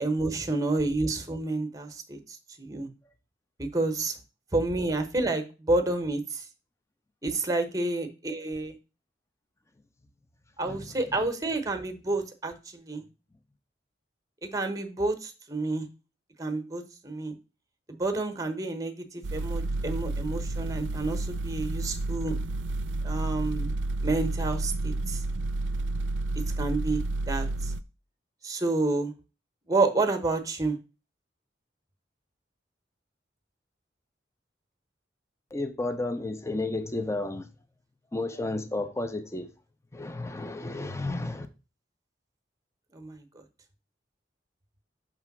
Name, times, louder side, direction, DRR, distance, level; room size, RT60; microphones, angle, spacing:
voice 1, 0.0-2.2 2.6-2.9 3.6-4.1 4.5-6.4 7.2-8.7 10.6-13.0 14.4-15.9 16.4-17.3 17.9-22.3 23.0-23.7 24.0-25.2 26.6-27.7 28.4-29.1 29.7-30.8 42.9-43.2, right 2 dB, 20° right, 0.9 m, -29 dB
voice 2, 10.7-11.0 35.5-37.5 38.1-39.5 39.9-41.5, left 2 dB, 15° left, 0.6 m, -32 dB
sound 1, 19.2-27.8, right 2 dB, 80° right, 0.4 m, -30 dB
5.9 x 3.4 x 5.9 m
head